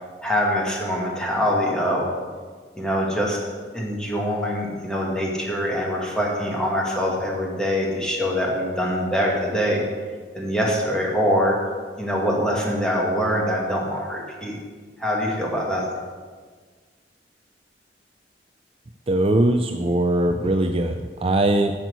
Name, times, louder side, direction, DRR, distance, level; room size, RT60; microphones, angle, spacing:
voice 1, 0.2-2.1 2.8-3.4 3.7-9.8 10.3-11.5 12.0-14.6 15.0-15.8, equal, 5° left, -2 dB, 2.0 m, -24 dB
voice 2, 19.1-21.7, right 1 dB, 35° right, 6 dB, 0.5 m, -21 dB
8.7 x 6.1 x 8.1 m, 1.5 s
head